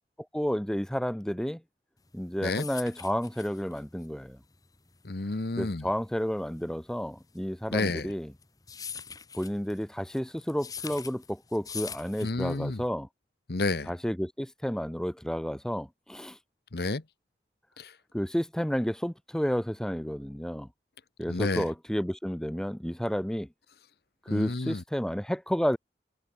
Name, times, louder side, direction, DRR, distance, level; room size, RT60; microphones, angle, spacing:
voice 1, 0.3-1.6 2.1-4.4 5.6-8.3 9.3-13.1 13.9-16.4 18.1-20.7 21.2-23.5 24.3-25.8, equal, 5° left, 0.5 m, -31 dB
sound 1, 2.1-12.9, left 7 dB, 20° left, 1.2 m, -43 dB
voice 2, 5.0-5.9 7.7-8.1 12.2-12.8 13.5-13.9 16.7-17.0 17.8-17.9 21.3-21.6 24.3-24.8, left 2 dB, 65° left, 1.0 m, -30 dB
head